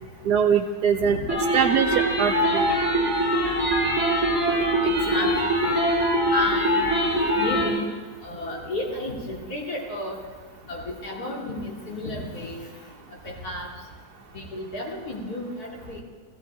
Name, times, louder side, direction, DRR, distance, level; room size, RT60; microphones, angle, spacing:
voice 1, 0.2-1.2 1.5-2.7, right 7 dB, 85° right, 1 dB, 1.2 m, -22 dB
sound 1, 1.3-7.7, equal, 5° right, 3.2 m, -23 dB
voice 2, 4.8-5.6 6.3-6.8 7.3-7.9 8.2-10.2 10.7-12.6 13.2-13.7 14.3-16.0, left 1 dB, 75° left, -2 dB, 3.0 m, -32 dB
16.0 x 15.5 x 4.8 m, 1.4 s
omnidirectional pair, 1.7 m